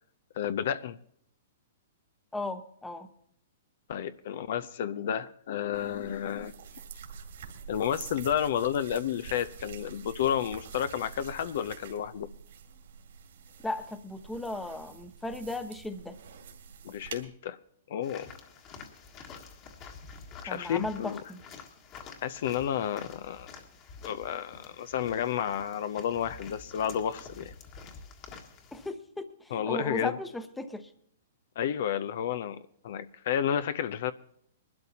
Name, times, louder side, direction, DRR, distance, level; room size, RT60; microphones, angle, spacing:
voice 1, 0.4-1.0 3.9-6.5 7.7-12.3 16.8-17.6 17.9-18.3 20.4-21.2 22.2-23.5 24.0-27.5 29.5-30.2 31.6-34.1, left 9 dB, 60° left, 0.5 m, -31 dB
voice 2, 2.3-3.1 13.6-16.2 20.5-21.4 28.7-30.9, left 2 dB, 5° left, 0.9 m, -36 dB
sound 1, 5.7-17.2, right 6 dB, 70° right, 2.3 m, -47 dB
sound 2, 18.0-28.9, left 5 dB, 35° left, 1.6 m, -48 dB
22.0 x 12.0 x 2.8 m
hypercardioid pair, 135°, 0 cm